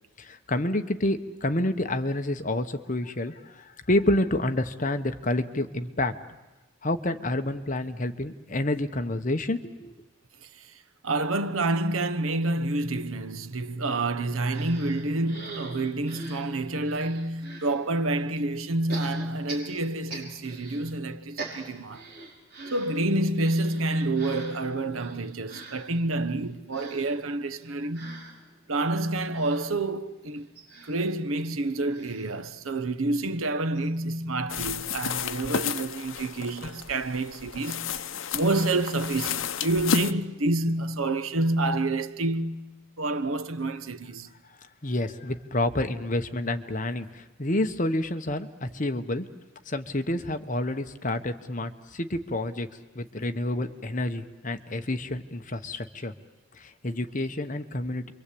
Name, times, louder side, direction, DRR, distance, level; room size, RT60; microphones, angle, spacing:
voice 1, 0.2-6.1 6.8-9.9 44.8-49.3 49.7-52.7 52.9-56.1 56.6-58.1, left 1 dB, 35° left, 1.1 m, -29 dB
voice 2, 11.0-22.1 22.7-28.3 28.7-30.5 30.8-44.3, right 2 dB, 80° right, 1.0 m, -28 dB
sound 1, 14.5-17.8 18.9-20.9 21.2-33.1 33.5-33.6 33.8-33.9, right 3 dB, 45° right, 6.0 m, -44 dB
sound 2, 34.5-40.1, left 7 dB, 70° left, 0.8 m, -32 dB
28.0 x 23.5 x 8.5 m
head